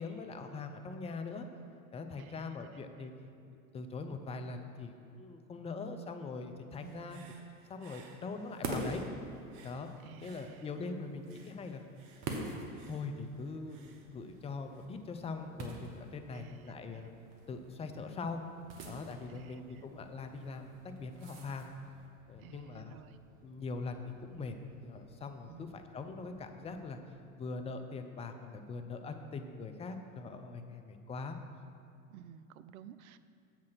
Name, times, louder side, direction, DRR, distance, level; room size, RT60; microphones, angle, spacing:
voice 1, 0.0-1.5 1.9-3.1 3.4-7.2 7.7-9.0 9.6-9.9 10.2-11.8 12.4-17.1 17.5-18.4 18.8-21.7 22.3-23.0 23.4-27.0 27.4-31.4, left 4 dB, 15° left, 6 dB, 0.5 m, -42 dB
voice 2, 2.2-3.1 6.8-7.1 10.0-10.7 16.3-17.1 19.3-19.9 22.4-23.2 25.5-25.8 32.1-33.2, right 8 dB, 75° right, 13 dB, 0.5 m, -54 dB
Human voice / Breathing, 6.7-10.9 11.2-14.9, right 4 dB, 60° right, 1.1 m, -60 dB
sound 1, 8.5-22.1, right 2 dB, 35° right, 1.3 m, -46 dB
sound 2, 13.8-26.9, right 3 dB, 20° right, 0.9 m, -64 dB
7.4 x 5.8 x 6.0 m, 2.6 s
hypercardioid pair, 95°, 42 cm